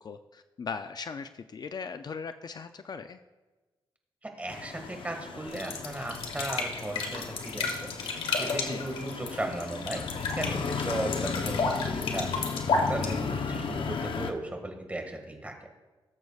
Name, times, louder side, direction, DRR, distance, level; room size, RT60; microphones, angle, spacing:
voice 1, 0.0-3.2 8.5-8.8, left 5 dB, 50° left, 9 dB, 0.4 m, -39 dB
voice 2, 4.2-7.8 8.4-12.3 12.9-15.8, right 1 dB, 15° right, 4 dB, 1.8 m, -36 dB
sound 1, 4.5-14.3, left 5 dB, 65° left, 0.8 m, -35 dB
sound 2, 5.5-13.7, left 4 dB, 85° left, 1.6 m, -32 dB
18.5 x 7.8 x 2.4 m, 1.2 s
cardioid pair, 85°, 9 cm